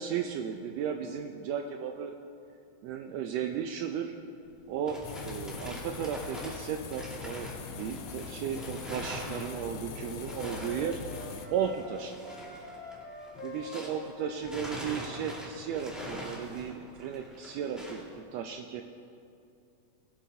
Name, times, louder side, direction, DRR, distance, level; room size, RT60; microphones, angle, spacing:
voice 1, 0.0-2.1 2.8-4.1 4.7-12.4 13.4-18.8, right 8 dB, 90° right, 5 dB, 1.5 m, -35 dB
sound 1, 4.5-14.1 14.4-18.1, equal, ahead, 1.1 m, -44 dB
sound 2, 5.0-11.5, left 7 dB, 90° left, 2.2 m, -42 dB
Wind instrument woodwind instrument, 9.0-11.9 12.2-15.4, left 1 dB, 40° left, 2.8 m, -47 dB
20.0 x 8.9 x 2.8 m, 2.5 s
omnidirectional pair, 3.5 m